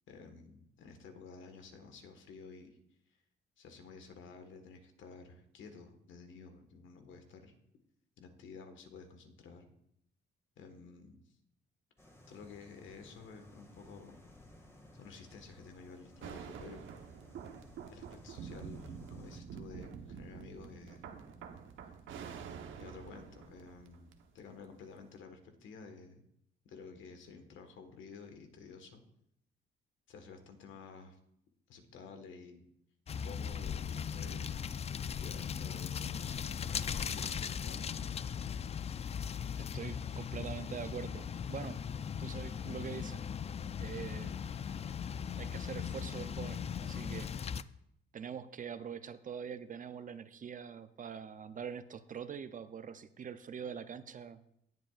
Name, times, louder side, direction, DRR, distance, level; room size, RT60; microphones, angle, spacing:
voice 1, 0.1-2.8 3.6-7.5 8.2-9.7 10.6-11.2 12.3-14.2 14.9-16.8 17.9-21.0 22.8-26.2 26.6-29.0 30.1-31.2 31.7-32.6 33.1-34.5 35.2-36.1 36.6-38.2, left 5 dB, 75° left, 6 dB, 1.5 m, -52 dB
sound 1, 12.0-19.4, left 1 dB, 15° left, 1.9 m, -58 dB
sound 2, 16.2-24.4 24.9-25.0, right 7 dB, 75° right, 1.0 m, -47 dB
sound 3, 33.1-47.6, left 7 dB, 30° left, 0.3 m, -38 dB
voice 2, 39.6-41.8 42.2-43.2 43.8-44.4 45.4-47.3 48.1-54.4, right 7 dB, 40° right, 13 dB, 0.6 m, -44 dB
18.5 x 7.7 x 2.5 m, 0.75 s
cardioid pair, 90°, 20 cm